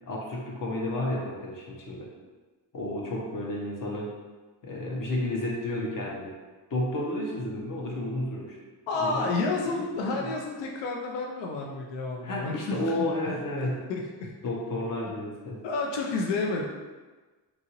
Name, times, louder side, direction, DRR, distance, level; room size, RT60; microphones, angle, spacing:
voice 1, 0.0-2.1 2.7-4.1 4.6-6.3 6.7-8.6 8.9-10.2 12.2-13.9 14.4-15.6, left 1 dB, 50° left, -2 dB, 0.7 m, -32 dB
voice 2, 8.9-12.8 13.3-13.4 13.9-14.3 15.6-16.6, left 3 dB, 85° left, 0 dB, 0.5 m, -30 dB
2.9 x 2.5 x 2.8 m, 1.3 s
cardioid pair, 105°, 43 cm